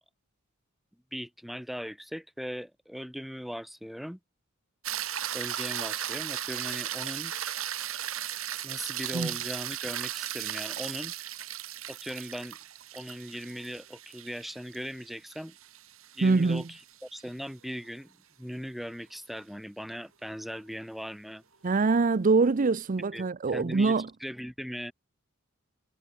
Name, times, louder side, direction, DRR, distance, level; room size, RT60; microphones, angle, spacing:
voice 1, 1.1-4.2 5.3-7.3 8.6-11.1 11.9-12.6 12.9-15.6 16.1-21.4 23.1-24.9, equal, ahead, 2.9 m, -39 dB
sound 1, 4.8-17.2 21.7-21.8, right 11 dB, 70° right, 4.2 m, -36 dB
voice 2, 16.2-16.6 21.6-24.1, right 4 dB, 40° right, 0.5 m, -24 dB
head